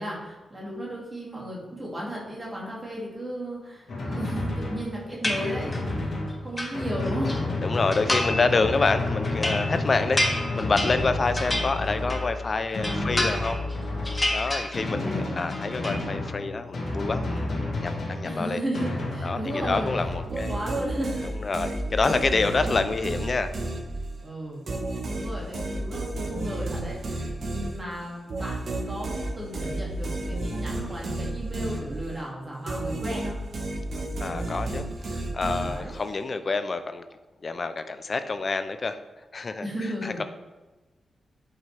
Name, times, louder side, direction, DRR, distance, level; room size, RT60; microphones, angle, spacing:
voice 1, 0.0-7.4 12.9-13.2 14.9-15.3 18.2-19.9 20.3-21.3 24.2-24.7 25.0-33.4 35.6-35.9 39.6-40.2, right 1 dB, 15° right, -5 dB, 2.4 m, -34 dB
Drum, 3.9-20.3, left 2 dB, 55° left, 1.9 m, -31 dB
sound 1, 5.2-5.9 6.3-7.4 7.9-8.5 8.9-12.4 12.7-13.7 14.0-15.1 15.4-16.0, left 1 dB, 15° left, 0.9 m, -30 dB
voice 2, 7.6-13.6 14.3-17.5 17.8-18.6 19.2-20.6 21.4-23.5 34.2-37.0 37.4-39.0 39.3-39.7 40.0-40.2, left 3 dB, 35° left, 9 dB, 0.5 m, -27 dB
sound 2, 20.3-24.3 24.7-32.3 32.7-36.1, right 2 dB, 55° right, 1.3 m, -32 dB
10.5 x 5.8 x 3.4 m, 1.2 s
wide cardioid pair, 175°, 0 cm